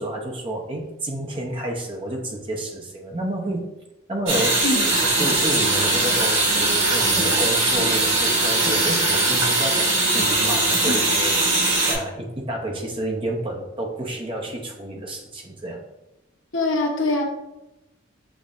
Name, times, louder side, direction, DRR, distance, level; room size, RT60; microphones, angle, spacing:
voice 1, 0.0-3.6 4.1-4.6 4.9-15.8, right 1 dB, 25° right, 1 dB, 0.6 m, -30 dB
sound 1, 4.3-11.9, right 2 dB, 85° right, 1.5 m, -20 dB
voice 2, 16.5-17.2, left 2 dB, 75° left, 1 dB, 0.9 m, -23 dB
7.0 x 2.6 x 2.5 m, 0.95 s
head